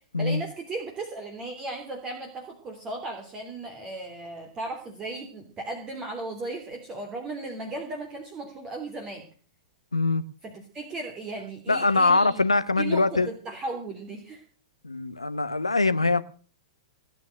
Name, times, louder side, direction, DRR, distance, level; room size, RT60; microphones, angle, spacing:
voice 1, 0.2-9.2 10.4-12.4 12.8-14.4, right 2 dB, 25° right, 3.1 m, -36 dB
voice 2, 9.9-10.2 11.7-13.3 14.8-16.2, left 3 dB, 85° left, 1.0 m, -23 dB
18.5 x 9.5 x 6.5 m
figure-of-eight pair, 105°, 3 cm